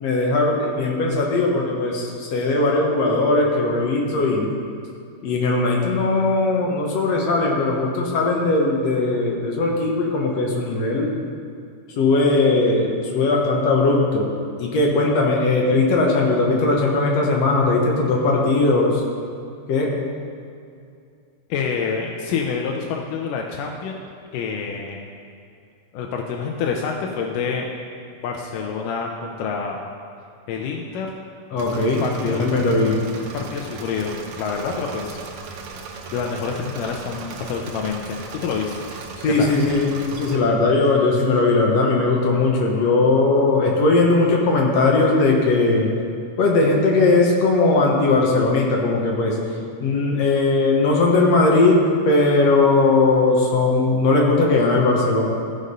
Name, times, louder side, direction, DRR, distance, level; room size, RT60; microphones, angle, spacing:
voice 1, 0.0-4.5 5.2-11.1 12.0-14.3 14.6-19.0 19.7-19.9 31.5-33.0 39.2-45.9 46.4-49.4 49.8-55.2, left 3 dB, 60° left, -1 dB, 2.1 m, -19 dB
voice 2, 21.5-24.0 24.3-25.0 25.9-27.7 28.2-29.8 30.5-31.2 32.0-32.4 33.3-35.2 36.1-39.0 39.4-39.5, left 5 dB, 85° left, 0 dB, 2.3 m, -27 dB
Engine / Mechanisms, 31.6-40.4, right 4 dB, 70° right, 2.0 m, -37 dB
14.5 x 5.2 x 5.3 m, 2.5 s
omnidirectional pair, 3.7 m